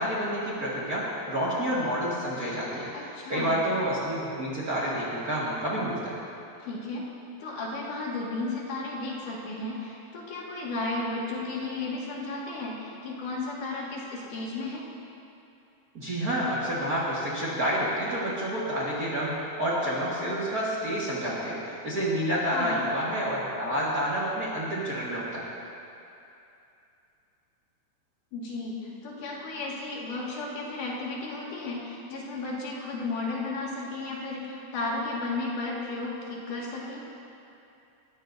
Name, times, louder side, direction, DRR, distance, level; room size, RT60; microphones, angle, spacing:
voice 1, 0.0-2.9 3.3-6.1 15.9-25.4, equal, 35° right, -7 dB, 1.7 m, -29 dB
voice 2, 2.9-3.6 6.6-7.0 7.4-14.8 22.5-22.8 28.3-37.0, left 3 dB, 75° left, -4 dB, 3.5 m, -34 dB
21.0 x 14.0 x 2.7 m, 2.7 s
omnidirectional pair, 3.7 m